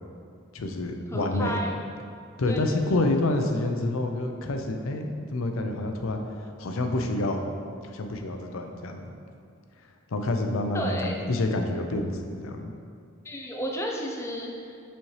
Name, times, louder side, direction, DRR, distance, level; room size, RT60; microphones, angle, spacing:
voice 1, 0.5-1.6 2.4-6.2 6.6-7.5 7.8-9.0 10.1-12.7, left 2 dB, 80° left, 4 dB, 0.5 m, -28 dB
voice 2, 1.1-1.7 2.5-2.6 2.9-3.0 10.7-11.2 13.2-14.8, equal, 15° left, -1 dB, 0.5 m, -32 dB
7.1 x 4.3 x 3.2 m, 2.3 s
head